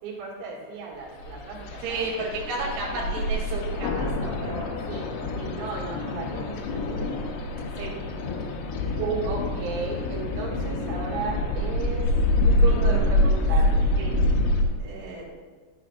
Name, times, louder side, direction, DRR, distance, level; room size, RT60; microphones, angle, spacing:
voice 1, 0.0-2.0 2.6-3.4 4.9-7.3 8.7-12.1 12.5-14.0, right 4 dB, 90° right, -4 dB, 4.2 m, -35 dB
sound 1, 1.3-14.6, left 1 dB, 80° left, 2.6 m, -26 dB
voice 2, 1.8-4.7 7.8-8.1 12.9-13.0 14.0-14.2 14.8-15.2, right 2 dB, 60° right, -5 dB, 3.9 m, -33 dB
12.0 x 6.9 x 2.5 m, 1.4 s
omnidirectional pair, 5.9 m